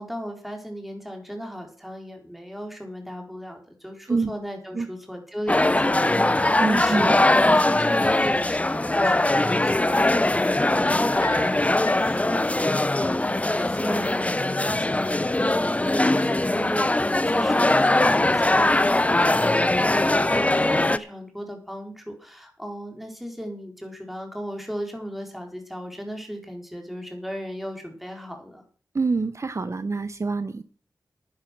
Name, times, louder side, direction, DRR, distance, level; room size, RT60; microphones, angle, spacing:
voice 1, 0.0-7.2 7.5-12.5 12.9-28.6, equal, ahead, 3 dB, 4.2 m, -35 dB
sound 1, 5.5-21.0, left 2 dB, 20° left, 0.7 m, -21 dB
voice 2, 6.6-7.1 7.5-7.6 28.9-30.6, right 3 dB, 45° right, 13 dB, 0.7 m, -26 dB
sound 2, 11.0-12.1, left 2 dB, 55° left, 4.7 m, -38 dB
10.5 x 10.5 x 6.1 m, 0.43 s
cardioid pair, 55°, 7 cm